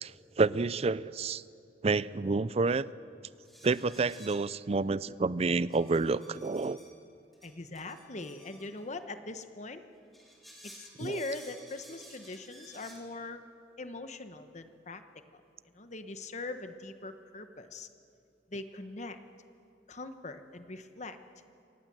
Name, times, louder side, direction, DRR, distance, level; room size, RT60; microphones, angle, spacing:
voice 1, 0.0-1.4 1.8-2.9 3.6-6.8 11.0-11.2, right 3 dB, 35° right, 18 dB, 0.4 m, -29 dB
sound 1, 3.4-4.7 5.7-6.9 7.3-8.8 10.0-13.1, equal, ahead, 3.9 m, -54 dB
voice 2, 7.4-9.8 10.6-13.4 13.8-15.0 15.3-15.4 15.7-17.9 18.5-19.2 19.9-21.2, left 2 dB, 40° left, 8 dB, 1.2 m, -41 dB
26.0 x 18.0 x 7.7 m, 2.5 s
head